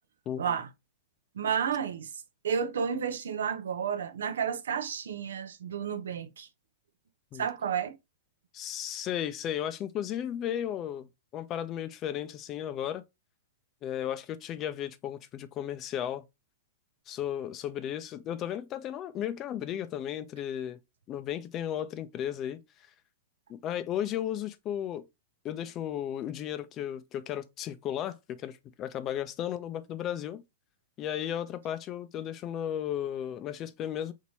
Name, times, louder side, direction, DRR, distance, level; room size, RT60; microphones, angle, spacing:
voice 1, 0.4-0.7 1.3-2.1 2.4-6.5 7.3-8.0, right 7 dB, 75° right, 0.6 m, -31 dB
voice 2, 8.5-13.0 13.8-16.2 17.1-20.8 21.1-22.6 23.5-25.0 25.4-30.4 31.0-34.1, left 10 dB, 35° left, 0.5 m, -34 dB
4.5 x 2.9 x 2.8 m
hypercardioid pair, 115°, 0 cm